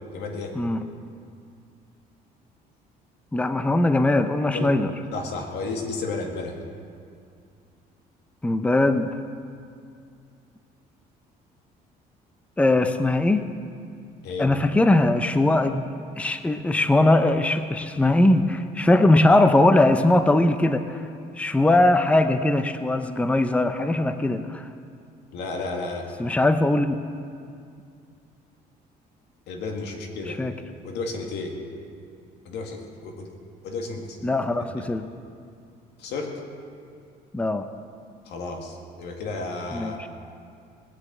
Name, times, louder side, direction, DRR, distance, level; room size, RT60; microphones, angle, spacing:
voice 1, 0.1-0.6 4.5-4.8 5.1-6.6 14.2-14.5 25.3-26.1 29.5-30.4 30.8-31.6 32.4-33.4 33.6-34.3 34.5-34.9 36.0-36.4 38.3-40.1, left 3 dB, 85° left, 2 dB, 2.1 m, -32 dB
voice 2, 3.3-4.9 8.4-9.1 12.6-13.5 14.4-15.9 16.2-21.0 21.4-24.7 26.2-26.9 30.4-30.5 34.2-35.1 37.3-37.7 39.7-39.9, left 2 dB, 10° left, 9 dB, 0.6 m, -20 dB
20.0 x 6.7 x 8.6 m, 2.4 s
cardioid pair, 110°, 17 cm